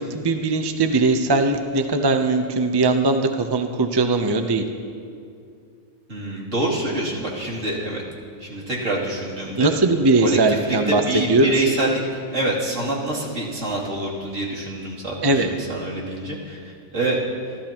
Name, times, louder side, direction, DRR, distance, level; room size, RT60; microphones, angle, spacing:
voice 1, 0.1-4.6 9.6-11.0 11.3-11.5 15.2-15.5, right 3 dB, 25° right, 5 dB, 0.6 m, -20 dB
voice 2, 6.1-8.0 8.4-9.7 10.2-12.0 12.3-17.2, right 2 dB, 65° right, -5 dB, 3.3 m, -26 dB
28.5 x 14.0 x 3.0 m, 2.4 s
omnidirectional pair, 1.4 m